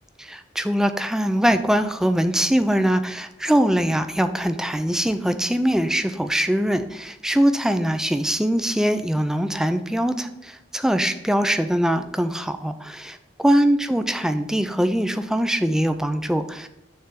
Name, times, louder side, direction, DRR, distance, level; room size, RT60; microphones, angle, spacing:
voice 1, 0.2-13.2 13.4-16.7, equal, 5° right, 9 dB, 0.4 m, -22 dB
6.5 x 3.3 x 6.0 m, 0.88 s
head